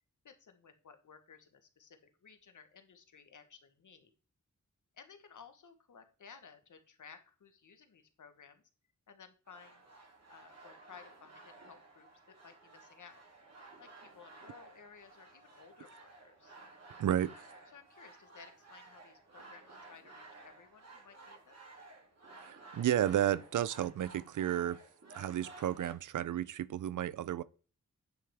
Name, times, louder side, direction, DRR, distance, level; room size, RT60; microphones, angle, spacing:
voice 1, 0.2-4.1 4.9-8.6 9.1-9.8 10.3-13.2 13.8-16.5 17.7-21.6, left 6 dB, 75° left, 1.3 m, -57 dB
sound 1, 9.5-25.9, right 3 dB, 55° right, 2.7 m, -55 dB
voice 2, 17.0-17.3 22.4-24.8 25.1-27.4, right 11 dB, 75° right, 0.4 m, -32 dB
9.7 x 5.9 x 3.5 m
cardioid pair, 55°, 31 cm